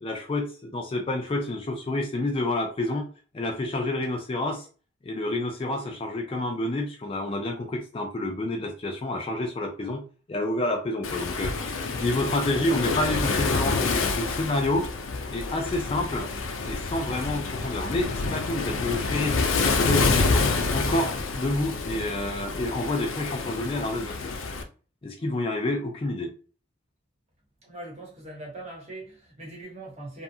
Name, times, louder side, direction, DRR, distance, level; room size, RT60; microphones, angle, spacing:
voice 1, 0.0-3.1 3.3-4.7 5.0-10.0 10.3-11.7 12.0-14.9 15.3-16.3 16.6-19.4 19.8-24.3 25.0-26.3, left 1 dB, 30° left, 0.3 m, -29 dB
Waves surf, 11.0-24.6, left 4 dB, 90° left, 0.5 m, -28 dB
voice 2, 27.6-30.2, right 2 dB, 35° right, 1.0 m, -41 dB
2.7 x 2.2 x 2.7 m
head